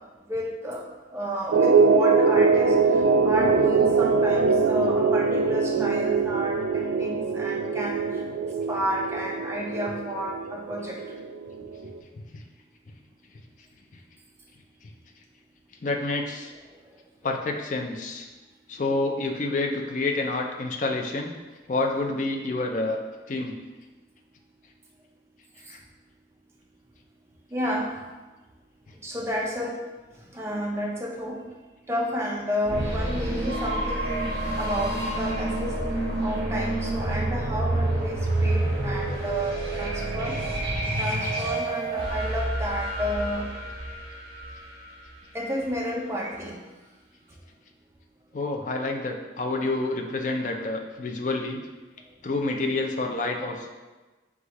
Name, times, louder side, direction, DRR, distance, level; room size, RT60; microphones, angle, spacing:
voice 1, 0.3-0.8 1.1-2.8 3.2-8.1 8.7-11.0 27.5-27.9 29.0-29.8 30.3-31.4 31.9-34.3 34.6-35.8 36.2-40.4 41.0-43.5 45.3-46.6, equal, 15° right, -2 dB, 0.5 m, -31 dB
sound 1, 1.5-12.0, right 4 dB, 85° right, 0.3 m, -22 dB
voice 2, 15.8-16.5 17.2-18.3 18.7-21.3 21.7-23.0 23.3-23.6 25.7-25.8 48.3-51.6 52.2-53.7, left 2 dB, 45° left, 2 dB, 0.4 m, -28 dB
sound 2, 32.6-45.4, right 1 dB, 60° right, 1.3 m, -28 dB
4.7 x 2.4 x 4.0 m, 1.2 s
head